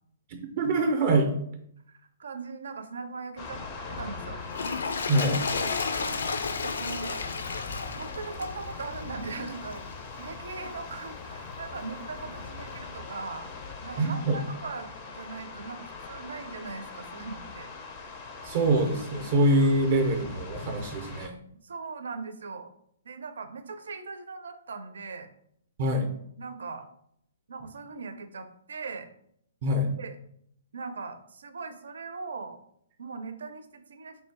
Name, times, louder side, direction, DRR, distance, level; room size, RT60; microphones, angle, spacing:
voice 1, 0.3-1.3 5.1-5.4 14.0-14.4 18.4-21.3 25.8-26.1 29.6-29.9, right 1 dB, 30° right, 4 dB, 0.5 m, -24 dB
voice 2, 2.2-3.6 3.9-4.4 5.6-7.2 8.0-9.8 10.2-13.5 13.8-17.7 21.6-22.7 23.0-25.3 26.4-26.9 27.5-29.1 30.0-30.2 30.7-32.6 33.0-34.2, right 4 dB, 90° right, 9 dB, 0.6 m, -39 dB
sound 1, 3.4-21.3, left 4 dB, 20° left, 0.4 m, -41 dB
Toilet flush, 4.4-9.9 10.6-10.7, left 5 dB, 80° left, 0.4 m, -33 dB
3.2 x 2.7 x 4.5 m, 0.69 s
hypercardioid pair, 175°, 0 cm